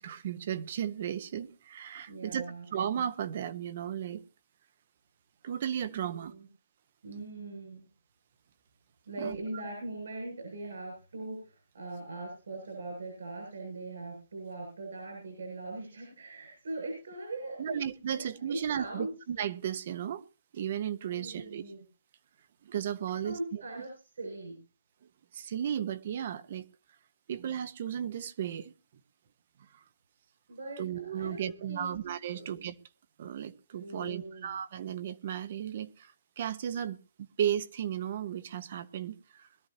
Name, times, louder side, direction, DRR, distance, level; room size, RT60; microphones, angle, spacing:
voice 1, 0.0-2.4 2.7-4.2 5.4-6.3 9.2-9.4 17.6-20.2 20.5-21.6 22.6-23.6 25.3-26.7 27.3-28.7 30.8-32.7 33.2-39.5, right 9 dB, 45° right, 1.1 m, -35 dB
voice 2, 2.1-2.6 6.0-6.5 7.0-7.8 9.1-17.8 18.1-19.1 21.1-21.8 23.1-24.6 30.5-32.0 32.3-32.5 33.8-34.5, right 2 dB, 75° right, 7.5 m, -41 dB
22.0 x 12.5 x 2.9 m
hypercardioid pair, 160°, 0 cm